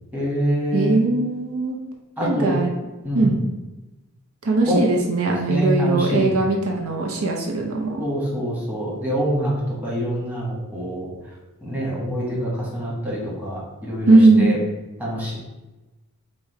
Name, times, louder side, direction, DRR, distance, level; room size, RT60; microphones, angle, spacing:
voice 1, 0.1-1.0 2.2-2.5 3.0-3.3 4.7-4.8 5.5-6.3 8.0-9.5 9.8-11.1 11.6-14.6 15.0-15.4, equal, 5° right, -6 dB, 1.3 m, -25 dB
voice 2, 0.7-1.8 2.2-2.7 3.1-3.4 4.4-8.1 14.1-14.5, right 2 dB, 70° right, 1 dB, 0.6 m, -19 dB
4.9 x 2.1 x 4.7 m, 1.1 s
head